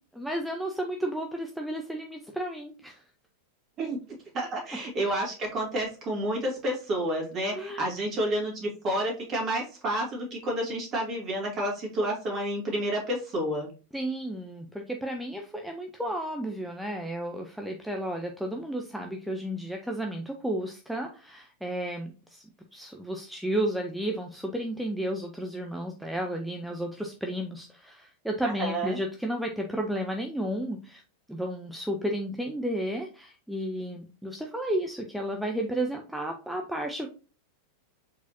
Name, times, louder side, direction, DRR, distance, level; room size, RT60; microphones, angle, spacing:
voice 1, 0.1-3.0 7.5-7.9 13.9-22.4 22.7-31.0 31.3-37.1, right 1 dB, ahead, 1 dB, 0.6 m, -32 dB
voice 2, 4.3-13.7 28.4-29.0, right 1 dB, 30° right, -1 dB, 2.5 m, -30 dB
4.7 x 4.1 x 2.6 m, 0.35 s
figure-of-eight pair, 90°, 0 cm